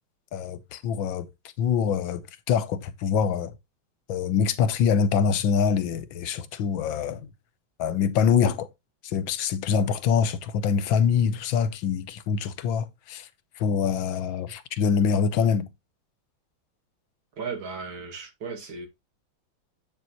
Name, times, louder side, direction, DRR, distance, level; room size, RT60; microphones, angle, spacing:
voice 1, 0.3-1.3 1.6-2.2 2.5-3.5 4.1-7.3 7.8-8.7 9.0-13.3 13.6-15.7, left 7 dB, 80° left, 1.6 m, -24 dB
voice 2, 17.4-18.9, right 5 dB, 85° right, 3.0 m, -35 dB
8.2 x 7.1 x 3.0 m
omnidirectional pair, 2.1 m